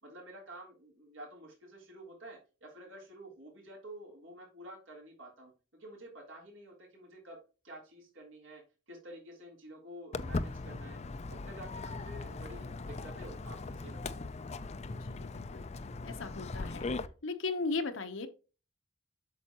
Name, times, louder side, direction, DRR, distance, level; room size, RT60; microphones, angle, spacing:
voice 1, 0.0-5.5 5.8-7.4 7.6-11.0 11.3-14.3, right 1 dB, 75° right, 3.3 m, -50 dB
Walk footsteps, 10.1-17.1, left 3 dB, 35° left, 0.4 m, -39 dB
voice 2, 15.0-15.7 16.0-16.9 17.2-18.3, left 3 dB, 80° left, 1.0 m, -37 dB
8.4 x 6.4 x 2.9 m
head